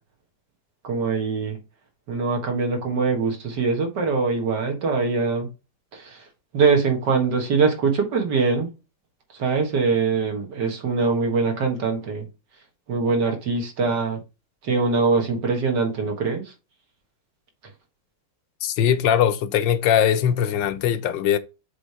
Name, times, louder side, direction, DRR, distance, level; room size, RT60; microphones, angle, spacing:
voice 1, 0.8-1.6 2.1-5.5 5.9-6.3 6.5-8.7 9.3-12.3 12.9-14.2 14.6-16.5, right 4 dB, 70° right, 2.3 m, -23 dB
voice 2, 18.6-21.4, left 9 dB, 85° left, 1.4 m, -20 dB
7.3 x 3.4 x 5.0 m
omnidirectional pair, 2.0 m